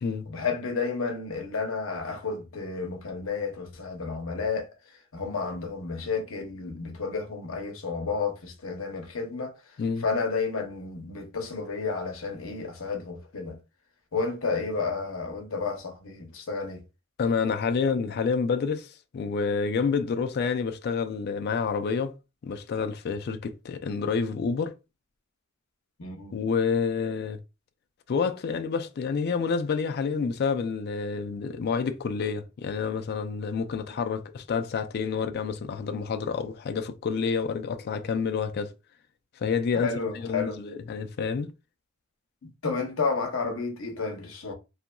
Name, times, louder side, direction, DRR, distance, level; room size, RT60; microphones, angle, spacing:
voice 1, 0.3-4.7 5.1-9.5 10.0-13.6 14.1-16.8 26.0-26.4 39.7-40.6 42.4-44.5, left 4 dB, 75° left, 0.7 m, -31 dB
voice 2, 17.2-22.1 22.4-24.8 26.3-27.4 28.1-38.7 39.4-39.9 40.2-41.5, left 5 dB, 50° left, 0.3 m, -28 dB
2.7 x 2.5 x 2.2 m
head